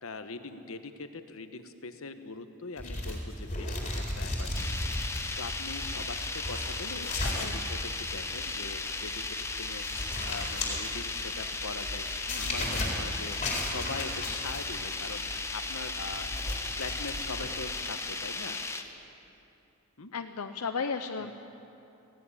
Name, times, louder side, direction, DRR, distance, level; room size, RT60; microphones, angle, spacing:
voice 1, 0.0-4.9 5.4-9.2 9.6-9.8 10.2-13.4 13.6-16.3 16.8-18.6 20.0-20.1 21.2-21.3, left 3 dB, 70° left, 8 dB, 1.2 m, -42 dB
sound 1, 2.8-17.8, left 1 dB, 30° left, 4.1 m, -36 dB
sound 2, 4.5-18.8, left 3 dB, 10° left, 0.9 m, -36 dB
voice 2, 20.1-21.3, left 5 dB, 90° left, 6 dB, 0.7 m, -34 dB
18.5 x 16.5 x 9.8 m, 2.9 s
head